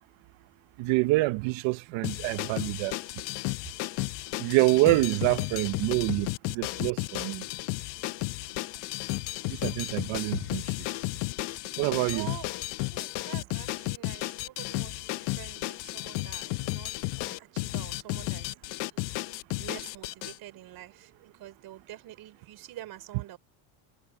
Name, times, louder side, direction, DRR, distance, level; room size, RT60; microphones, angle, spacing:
voice 1, 0.8-2.9 4.4-6.3 6.5-7.4 9.6-10.6 11.8-12.3, right 21 dB, 70° right, 1.0 m, -26 dB
sound 1, 2.0-20.4, left 21 dB, 65° left, 0.9 m, -33 dB
voice 2, 12.1-12.5 12.9-18.5 18.8-18.9 19.6-23.4, right 14 dB, 50° right, 5.5 m, -46 dB
cardioid pair, 160°, 48 cm